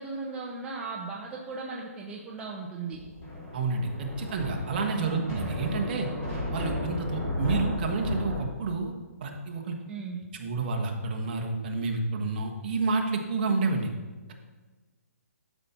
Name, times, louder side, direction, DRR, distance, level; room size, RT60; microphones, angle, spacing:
voice 1, 0.0-3.0 4.9-5.3 9.9-10.2, right 4 dB, 10° right, -3 dB, 0.5 m, -37 dB
Thunder, 2.9-8.4, left 1 dB, 15° left, 2.5 m, -34 dB
voice 2, 3.5-6.1 6.5-8.9 9.2-9.8 10.4-13.9, right 3 dB, 35° right, 2 dB, 1.2 m, -29 dB
12.0 x 5.8 x 4.3 m, 1.3 s
hypercardioid pair, 165°, 8 cm